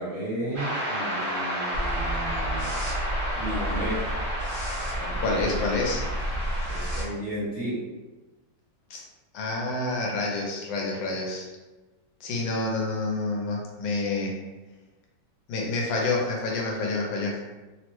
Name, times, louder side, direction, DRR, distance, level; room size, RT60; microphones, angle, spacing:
voice 1, 0.0-2.7 3.3-4.0 4.9-5.7 6.6-7.8, right 1 dB, 40° right, -10 dB, 1.2 m, -33 dB
sound 1, 0.5-7.0, equal, 65° right, 1.5 m, -32 dB
sound 2, 1.7-7.0, right 1 dB, 70° left, 0.6 m, -32 dB
voice 2, 5.2-6.1 8.9-9.0 9.3-11.5 12.2-14.5 15.5-17.4, left 3 dB, 85° left, 0 dB, 1.4 m, -28 dB
3.4 x 2.0 x 3.0 m, 1.2 s
omnidirectional pair, 2.0 m